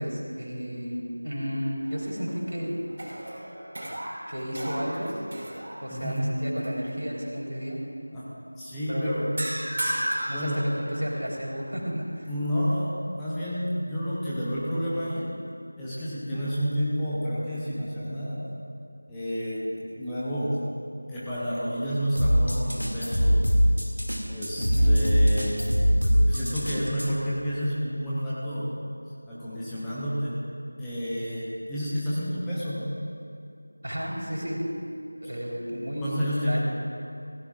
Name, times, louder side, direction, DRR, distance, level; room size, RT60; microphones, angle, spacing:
voice 1, 0.0-2.8 4.3-5.1 5.8-7.8 8.9-9.1 10.3-12.3 24.5-25.1 33.8-34.7 35.2-36.1 36.4-36.6, equal, 75° right, -2 dB, 3.8 m, -32 dB
sound 1, 1.8-2.5 2.9-6.2 6.6-6.9 9.4-11.3, right 1 dB, 40° right, 3.8 m, -34 dB
voice 2, 5.9-6.2 8.1-8.3 8.5-9.3 10.3-10.6 12.3-15.3 15.8-18.4 19.1-20.6 21.1-23.5 24.3-25.6 26.0-28.7 29.2-30.4 30.8-32.9 36.0-36.6, equal, 5° left, -11 dB, 1.1 m, -30 dB
sound 2, 22.2-27.1, equal, 85° left, 2.3 m, -22 dB
17.0 x 16.0 x 2.5 m, 2.4 s
figure-of-eight pair, 170°, 0 cm